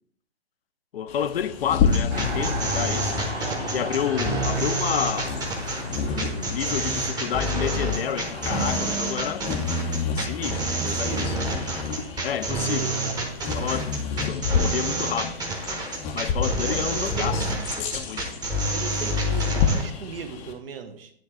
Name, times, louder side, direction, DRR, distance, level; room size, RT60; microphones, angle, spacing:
voice 1, 0.9-3.2 3.7-5.4 6.0-9.5 10.1-11.4 12.2-12.9 13.5-15.4 16.1-17.5 17.8-18.3, left 9 dB, 60° left, 0.6 m, -30 dB
Bird vocalization bird call bird song, 1.1-20.5, left 5 dB, 20° left, 0.5 m, -30 dB
sound 1, 1.9-19.8, right 1 dB, 10° right, 1.0 m, -28 dB
sound 2, 2.1-14.9 15.6-15.7, right 1 dB, 85° right, 1.9 m, -38 dB
voice 2, 3.4-3.9 10.6-11.3 12.6-13.2 16.6-17.3 18.7-21.1, right 6 dB, 60° right, 0.9 m, -37 dB
9.5 x 3.2 x 4.6 m
figure-of-eight pair, 125°, 33 cm